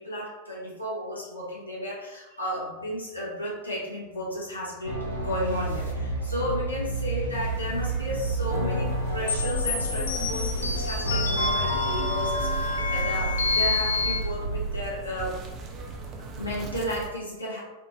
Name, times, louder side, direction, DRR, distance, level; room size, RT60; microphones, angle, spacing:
voice 1, 0.0-15.4 16.4-17.6, equal, 80° left, -5 dB, 0.9 m, -33 dB
sound 1, 4.8-14.8, right 2 dB, 70° right, 0.6 m, -30 dB
sound 2, 7.3-17.1, right 6 dB, 30° right, 0.4 m, -39 dB
sound 3, 9.3-14.2, left 3 dB, 65° left, 0.4 m, -28 dB
2.6 x 2.5 x 2.7 m, 1.0 s
figure-of-eight pair, 90°, 0 cm